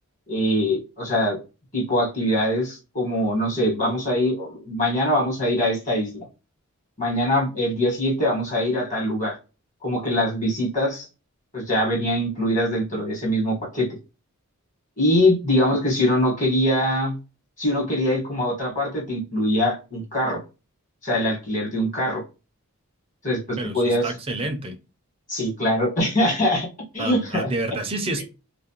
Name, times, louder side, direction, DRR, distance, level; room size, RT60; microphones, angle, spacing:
voice 1, 0.3-1.4 1.7-6.2 7.0-9.4 9.8-11.1 11.5-13.9 15.0-17.1 17.6-20.4 21.0-22.2 23.2-24.1 25.3-26.7 26.9-27.5 28.2-28.3, left 1 dB, 35° left, 1.3 m, -23 dB
voice 2, 23.6-24.8 27.0-28.2, right 2 dB, 25° right, 0.4 m, -29 dB
2.4 x 2.0 x 2.8 m
head